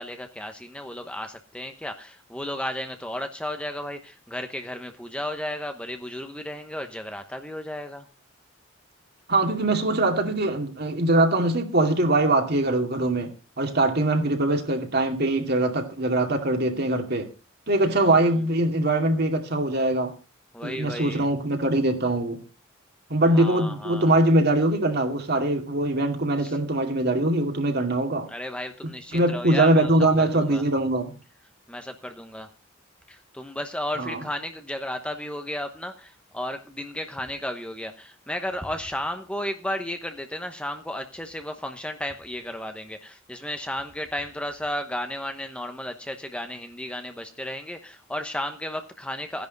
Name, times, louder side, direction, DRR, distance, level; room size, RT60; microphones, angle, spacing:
voice 1, 0.0-8.1 17.9-18.1 20.5-21.3 23.3-24.2 26.4-26.6 28.3-29.9 30.2-30.6 31.7-32.5 33.1-49.5, left 1 dB, 5° left, 0.9 m, -34 dB
voice 2, 9.3-17.3 17.7-20.1 20.6-22.4 23.1-28.3 29.1-31.1 34.0-34.2, right 2 dB, 55° right, 2.4 m, -22 dB
15.5 x 10.5 x 3.9 m
head